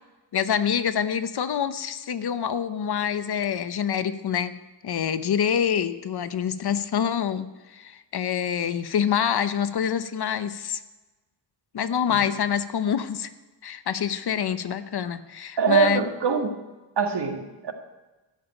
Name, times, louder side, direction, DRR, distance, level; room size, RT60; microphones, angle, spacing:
voice 1, 0.3-4.6 4.8-10.8 11.7-13.3 13.6-16.0, left 8 dB, 60° left, 12 dB, 0.8 m, -26 dB
voice 2, 15.6-16.5 17.0-17.7, right 5 dB, 65° right, 4 dB, 1.7 m, -23 dB
14.0 x 7.0 x 8.9 m, 1.1 s
wide cardioid pair, 125°, 44 cm